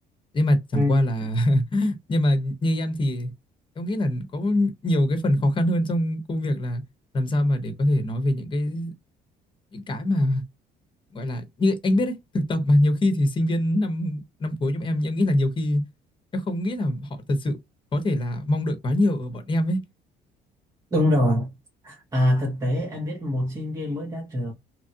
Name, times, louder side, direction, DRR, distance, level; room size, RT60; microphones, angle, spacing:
voice 1, 0.3-3.3 3.8-6.8 7.1-8.9 9.7-10.4 11.1-15.8 16.3-17.6 17.9-19.8, left 1 dB, 30° left, 1.0 m, -23 dB
voice 2, 20.9-21.6 21.8-24.5, left 1 dB, 20° right, 0.9 m, -24 dB
3.0 x 2.4 x 2.7 m
cardioid pair, 110°, 17 cm